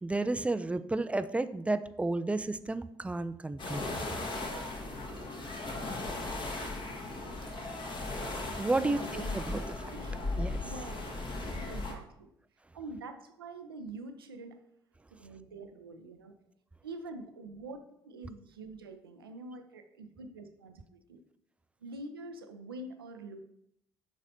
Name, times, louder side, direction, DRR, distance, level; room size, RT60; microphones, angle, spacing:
voice 1, 0.0-3.8 8.6-9.0 9.3-9.6 10.4-10.6, right 2 dB, 10° right, 12 dB, 0.4 m, -31 dB
sound 1, 3.6-11.9, left 2 dB, 40° left, 1.4 m, -37 dB
voice 2, 8.7-10.2 10.6-12.3 12.7-14.6 15.1-16.3 16.8-21.2 21.8-23.4, right 2 dB, 80° right, 6 dB, 0.5 m, -46 dB
11.5 x 4.1 x 2.7 m, 0.76 s
figure-of-eight pair, 45°, 12 cm